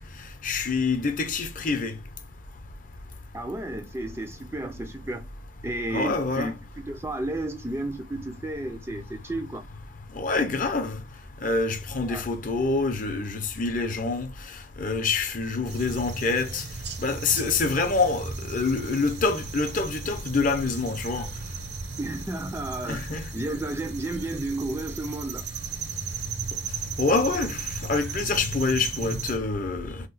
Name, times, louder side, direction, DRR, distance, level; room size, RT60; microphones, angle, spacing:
voice 1, 0.4-2.0 5.9-6.5 10.2-11.0 11.4-14.3 14.8-16.6 17.0-21.3 22.9-23.2 27.0-29.9, left 3 dB, 45° left, 0.6 m, -26 dB
voice 2, 3.3-5.3 5.6-6.5 6.9-9.6 12.1-12.2 22.0-25.5, right 2 dB, 15° right, 0.3 m, -32 dB
sound 1, 15.7-29.4, right 5 dB, 60° right, 0.7 m, -36 dB
2.8 x 2.1 x 4.0 m
head